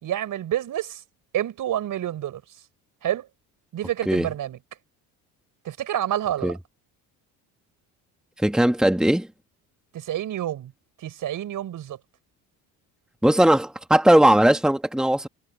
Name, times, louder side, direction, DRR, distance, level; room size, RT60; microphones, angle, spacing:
voice 1, 0.0-1.0 1.3-2.4 3.0-3.3 3.7-4.6 5.6-6.5 9.9-10.7 11.0-12.0, right 11 dB, 60° right, 5.6 m, -28 dB
voice 2, 8.4-9.3 13.2-15.3, right 1 dB, ahead, 1.8 m, -18 dB
cardioid pair, 105°, 37 cm